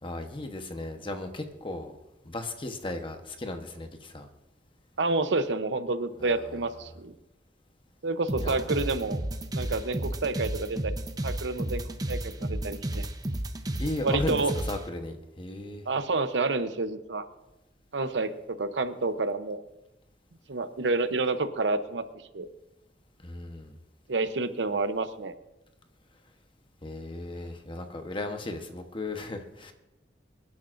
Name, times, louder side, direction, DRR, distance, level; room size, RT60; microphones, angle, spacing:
voice 1, 0.0-1.9 2.2-4.3 6.2-6.4 8.4-8.7 13.8-15.8 23.2-23.7 26.8-29.7, left 2 dB, 30° left, 6 dB, 1.1 m, -36 dB
voice 2, 5.0-7.1 8.0-9.2 9.5-11.0 11.2-13.1 14.0-14.5 15.9-17.2 17.9-19.6 20.5-22.0 22.3-22.5 24.1-25.3, right 3 dB, 85° right, 11 dB, 0.8 m, -29 dB
sound 1, 8.3-14.8, right 1 dB, 20° right, 0.7 m, -32 dB
24.0 x 11.0 x 2.6 m, 1.0 s
head